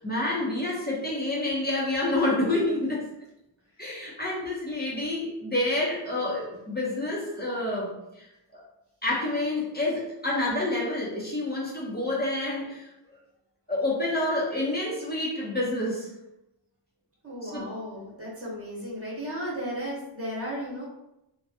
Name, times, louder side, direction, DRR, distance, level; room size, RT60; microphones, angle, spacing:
voice 1, 0.0-3.1 3.8-8.6 9.0-12.9 13.7-16.1 17.4-17.6, left 2 dB, 20° left, -5 dB, 0.9 m, -28 dB
voice 2, 17.2-20.9, equal, 30° right, -5 dB, 1.2 m, -35 dB
3.0 x 2.2 x 2.7 m, 0.87 s
wide cardioid pair, 105°, 48 cm